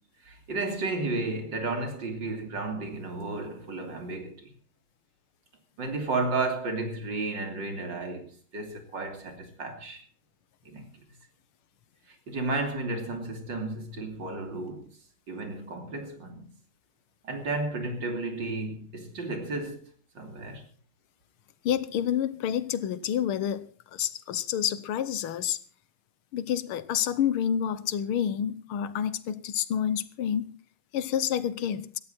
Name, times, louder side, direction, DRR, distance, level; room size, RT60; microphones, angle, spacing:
voice 1, 0.2-4.5 5.8-10.0 10.7-10.8 12.3-14.9 15.3-16.5 17.2-19.8 20.2-20.6, right 3 dB, 60° right, 3.5 m, -33 dB
voice 2, 21.6-25.6 26.3-30.6 30.9-31.9, left 9 dB, 85° left, 1.8 m, -29 dB
17.5 x 13.5 x 4.4 m
omnidirectional pair, 2.3 m